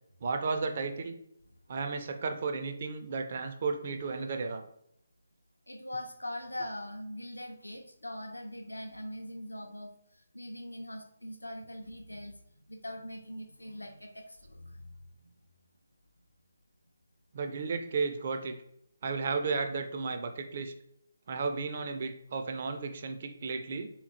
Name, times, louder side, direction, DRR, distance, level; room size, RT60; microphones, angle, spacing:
voice 1, 0.2-1.1 1.7-4.6 17.3-18.6 19.0-20.7 21.3-23.9, right 4 dB, 40° right, 6 dB, 0.4 m, -33 dB
voice 2, 5.7-9.9 10.3-15.3, left 1 dB, 80° left, 4 dB, 0.5 m, -42 dB
3.6 x 2.9 x 2.8 m, 0.71 s
figure-of-eight pair, 145°, 0 cm